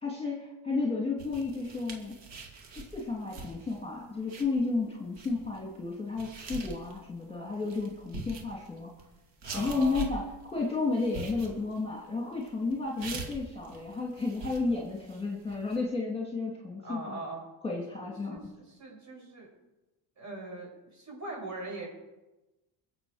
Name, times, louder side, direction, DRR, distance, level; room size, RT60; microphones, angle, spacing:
voice 1, 0.0-2.1 2.7-8.9 9.5-10.3 10.5-17.2 17.6-18.4, left 3 dB, 10° left, -2 dB, 2.7 m, -32 dB
sound 1, 1.2-15.8, right 3 dB, 65° right, 2.7 m, -44 dB
voice 2, 9.5-10.1 16.8-17.5 17.9-19.5 20.2-21.9, right 2 dB, 35° right, -1 dB, 6.5 m, -41 dB
22.5 x 7.9 x 5.0 m, 1.0 s
cardioid pair, 115°, 46 cm